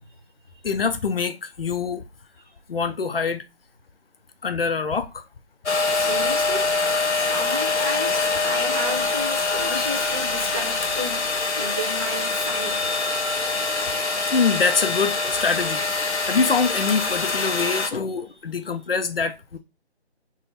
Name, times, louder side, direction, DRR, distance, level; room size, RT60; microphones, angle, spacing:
voice 1, 0.6-2.0 2.7-3.4 4.4-5.2 14.3-15.9 16.2-19.6, left 5 dB, 60° left, 0.6 m, -24 dB
sound 1, 5.7-17.9, left 3 dB, 90° left, 0.9 m, -24 dB
voice 2, 5.9-6.7 7.1-11.2 11.5-12.7, equal, 20° right, 0.8 m, -33 dB
3.7 x 2.1 x 4.0 m
figure-of-eight pair, 170°, 33 cm